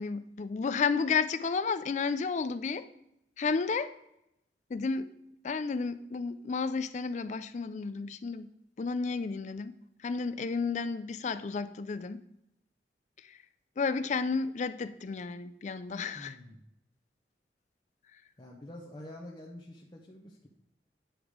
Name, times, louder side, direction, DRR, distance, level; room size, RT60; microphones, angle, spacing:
voice 1, 0.0-2.9 3.4-3.9 4.7-5.1 5.4-8.5 8.8-9.7 10.0-12.2 13.2-13.4 13.8-16.4, left 5 dB, 40° left, 12 dB, 0.4 m, -32 dB
voice 2, 16.1-16.6 18.4-20.5, left 1 dB, 25° left, -1 dB, 0.8 m, -47 dB
8.9 x 4.9 x 5.0 m, 0.80 s
head